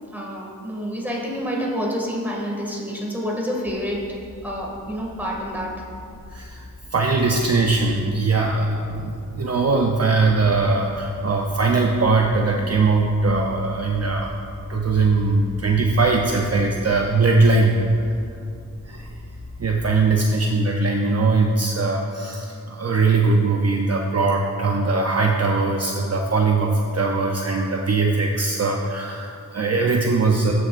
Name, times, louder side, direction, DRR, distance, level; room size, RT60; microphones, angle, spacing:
voice 1, 0.1-5.8, equal, 5° right, -2 dB, 2.0 m, -28 dB
sound 1, 3.7-19.8, left 2 dB, 10° left, 1.0 m, -41 dB
voice 2, 6.3-6.6 6.9-14.3 14.7-17.8 18.0-18.1 18.8-19.1 19.6-30.5, right 3 dB, 45° right, 1 dB, 0.6 m, -20 dB
14.0 x 6.4 x 2.5 m, 2.5 s
cardioid pair, 65°, 36 cm